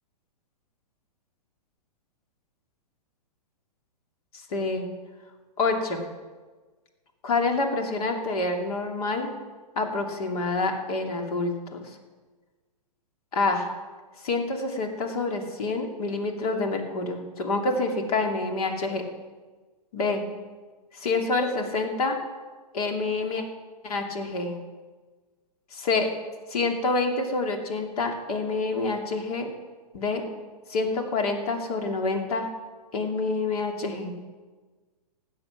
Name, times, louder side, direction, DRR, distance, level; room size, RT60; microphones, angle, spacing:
voice 1, 4.5-4.9 5.6-6.0 7.2-9.3 9.8-12.0 13.3-13.7 14.2-19.0 19.9-20.2 20.9-22.2 22.7-23.4 23.8-24.6 25.7-26.1 26.5-29.5 29.9-30.2 30.7-32.5 32.9-34.1, left 3 dB, 65° left, 3 dB, 2.6 m, -27 dB
16.0 x 9.7 x 5.9 m, 1.4 s
hypercardioid pair, 120°, 21 cm